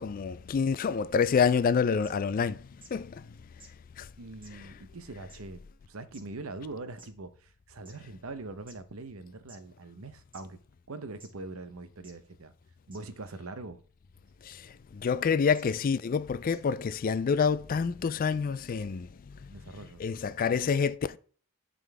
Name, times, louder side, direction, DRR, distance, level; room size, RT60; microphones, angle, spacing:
voice 1, 0.0-2.6 2.9-3.1 14.5-14.6 15.0-19.1 20.0-21.2, left 6 dB, 40° left, 0.3 m, -27 dB
sound 1, 1.3-1.4 2.0-2.1 2.8-2.9 3.6-3.7 4.4-4.5 5.3-5.4 6.1-6.2 7.0-7.1 7.9-8.0 8.7-8.8 9.5-9.6 10.3-10.4 11.2-11.3 12.0-12.1 12.9-13.0 14.3-14.4 15.5-15.6 16.5-16.6, right 2 dB, 25° right, 1.9 m, -52 dB
voice 2, 4.2-10.6 10.9-12.5 12.9-13.8 19.5-20.0, right 3 dB, 75° right, 0.8 m, -43 dB
11.0 x 3.9 x 3.4 m
head